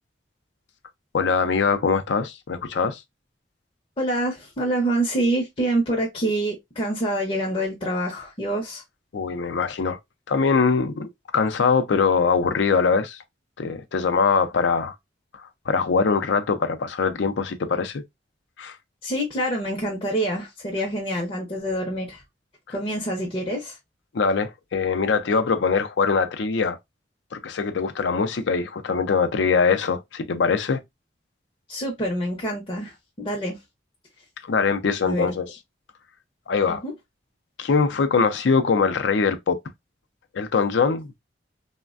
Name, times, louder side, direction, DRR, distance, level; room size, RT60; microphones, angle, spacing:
voice 1, 1.1-3.0 9.1-10.0 10.3-13.2 13.6-14.9 15.3-18.0 18.6-18.8 24.1-26.8 27.3-30.8 34.4-35.5 36.5-36.8 37.6-39.6 40.3-41.2, left 5 dB, 80° left, 0.5 m, -22 dB
voice 2, 4.0-8.8 19.0-22.2 22.7-23.8 31.7-33.6 35.0-35.3 36.7-36.9, right 1 dB, 30° left, 0.6 m, -26 dB
3.3 x 2.1 x 2.3 m
head